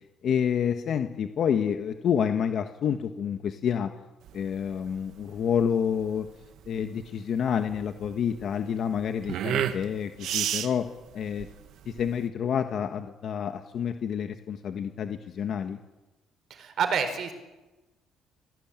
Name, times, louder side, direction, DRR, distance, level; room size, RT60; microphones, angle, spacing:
voice 1, 0.2-3.9 4.3-6.3 6.7-10.9 11.1-11.5 11.8-15.8, left 8 dB, 55° left, 7 dB, 1.5 m, -28 dB
sound 1, 4.2-12.3, right 10 dB, 70° right, 1.6 m, -33 dB
voice 2, 16.6-17.3, right 6 dB, 55° right, 9 dB, 4.7 m, -27 dB
28.0 x 19.0 x 9.0 m, 1.1 s
cardioid pair, 135°, 0 cm